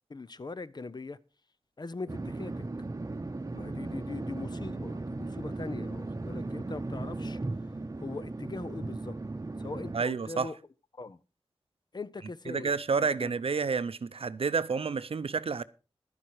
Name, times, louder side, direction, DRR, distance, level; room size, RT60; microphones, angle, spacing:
voice 1, 0.1-1.2 1.8-2.6 3.5-7.4 8.0-9.2 9.6-10.6 10.9-11.2 11.9-12.7 13.2-13.3, left 3 dB, 45° left, 0.6 m, -41 dB
sound 1, 2.1-10.0, right 2 dB, 35° right, 0.8 m, -37 dB
voice 2, 9.9-10.5 12.5-15.6, right 5 dB, 75° right, 0.6 m, -29 dB
12.0 x 10.0 x 4.7 m
wide cardioid pair, 85°, 10 cm